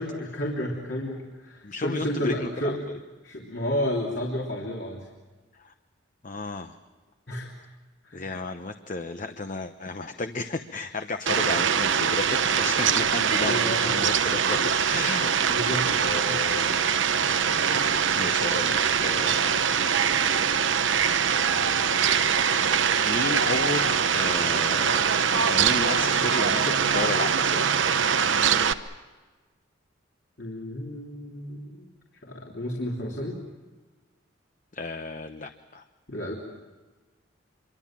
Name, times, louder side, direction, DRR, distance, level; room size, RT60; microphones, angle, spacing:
voice 1, 0.0-2.9 3.2-5.1 7.3-7.5 8.0-8.2 13.4-13.9 15.4-16.4 30.4-31.9 32.2-33.4 36.1-36.3, left 1 dB, 60° left, -2 dB, 3.2 m, -31 dB
voice 2, 1.6-3.0 5.6-5.7 6.2-6.8 8.1-16.8 18.1-19.6 23.0-27.7 34.7-35.8, left 3 dB, 40° left, 7 dB, 0.8 m, -33 dB
Fowl, 11.3-28.7, right 7 dB, 70° right, 0.9 m, -23 dB
26.5 x 24.0 x 7.4 m, 1.3 s
head